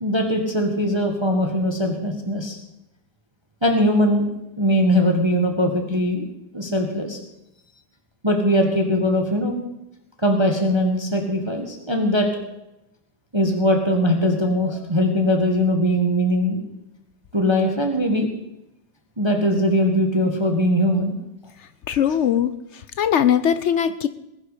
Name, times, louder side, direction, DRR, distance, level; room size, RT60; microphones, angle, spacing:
voice 1, 0.0-2.6 3.6-4.3 4.6-6.3 6.5-7.2 8.2-9.6 10.2-12.3 13.3-16.6 17.3-18.3 19.2-21.2, equal, 15° right, 3 dB, 1.6 m, -20 dB
voice 2, 21.9-22.5 23.0-24.1, left 9 dB, 85° left, 13 dB, 0.6 m, -20 dB
20.0 x 11.0 x 5.0 m, 0.89 s
omnidirectional pair, 2.0 m